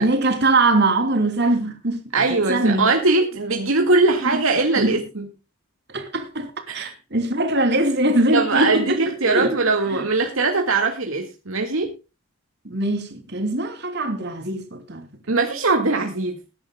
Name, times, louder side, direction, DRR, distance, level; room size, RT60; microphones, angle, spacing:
voice 1, 0.0-2.0 2.3-2.9 4.3-4.4 4.8-4.9 5.9-9.0 9.2-9.5 9.9-10.0 12.6-15.1, right 2 dB, 55° right, 2.9 m, -22 dB
voice 2, 2.1-5.3 6.7-6.9 8.3-11.9 15.3-16.4, right 3 dB, 75° right, 1.9 m, -21 dB
21.0 x 10.5 x 2.2 m
head